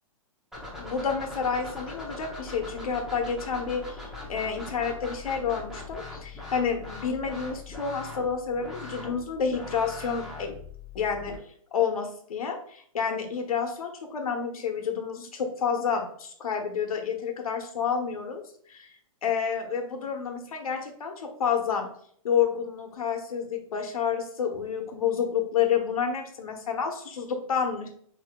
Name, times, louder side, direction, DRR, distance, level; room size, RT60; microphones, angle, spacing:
sound 1, 0.5-11.3, left 2 dB, ahead, 0.8 m, -41 dB
voice 1, 0.7-10.5 10.9-11.4 11.7-18.4 18.7-18.9 19.2-21.9 22.2-27.9, left 7 dB, 85° left, 4 dB, 1.0 m, -29 dB
6.5 x 3.0 x 2.3 m, 0.62 s
hypercardioid pair, 155°, 18 cm